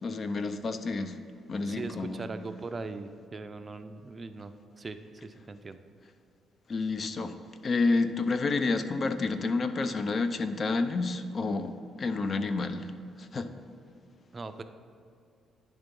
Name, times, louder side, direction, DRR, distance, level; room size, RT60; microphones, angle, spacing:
voice 1, 0.0-1.2 1.5-2.2 6.7-7.3 7.6-12.9 13.2-13.5, left 3 dB, 45° left, 10 dB, 0.5 m, -29 dB
voice 2, 1.7-4.5 4.8-5.8 14.3-14.6, right 3 dB, 30° right, 9 dB, 0.4 m, -40 dB
10.0 x 3.5 x 5.3 m, 2.5 s
cardioid pair, 90°, 0 cm